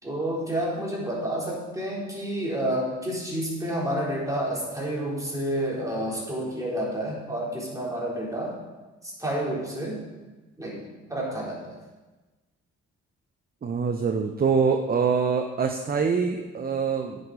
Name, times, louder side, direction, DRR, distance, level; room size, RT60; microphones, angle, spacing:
voice 1, 0.0-8.6 9.0-10.0 10.6-10.8 11.1-11.8, right 1 dB, 10° right, -4 dB, 3.7 m, -29 dB
voice 2, 13.6-17.2, right 5 dB, 30° right, 6 dB, 0.7 m, -24 dB
9.3 x 6.8 x 5.0 m, 1.2 s
cardioid pair, 90°, 30 cm